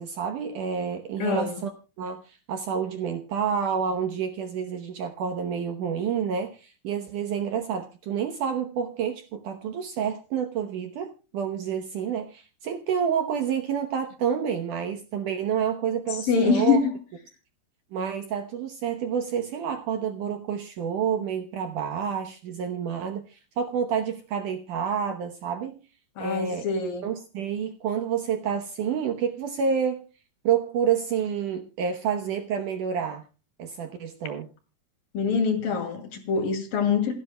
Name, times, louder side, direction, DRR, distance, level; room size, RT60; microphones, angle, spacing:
voice 1, 0.0-1.7 2.0-16.8 17.9-25.8 26.2-26.7 27.0-30.0 30.4-33.2 33.6-34.5, right 7 dB, 70° right, 2.1 m, -29 dB
voice 2, 1.2-1.6 16.1-16.9 26.2-27.1 35.1-37.1, left 5 dB, 60° left, 3.7 m, -24 dB
28.0 x 10.0 x 2.2 m
omnidirectional pair, 4.7 m